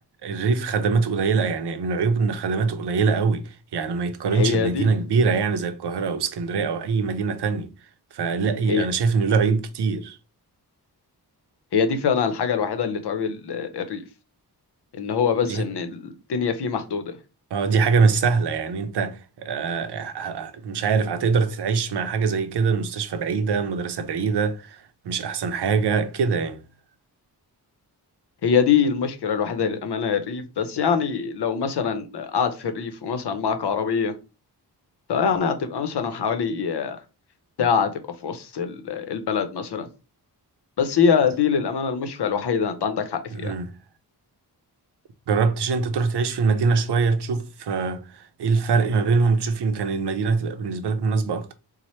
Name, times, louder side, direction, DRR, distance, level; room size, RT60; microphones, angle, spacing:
voice 1, 0.2-7.7 8.1-10.2 15.5-15.6 17.5-26.6 43.3-43.7 45.3-51.5, right 4 dB, 75° right, 0.6 m, -23 dB
voice 2, 4.3-4.9 8.7-8.9 11.7-14.0 14.9-17.1 28.4-34.1 35.1-37.0 37.6-37.9 38.2-39.9 40.8-43.5, left 6 dB, 75° left, 0.7 m, -24 dB
4.1 x 2.1 x 3.1 m
wide cardioid pair, 75°, 40 cm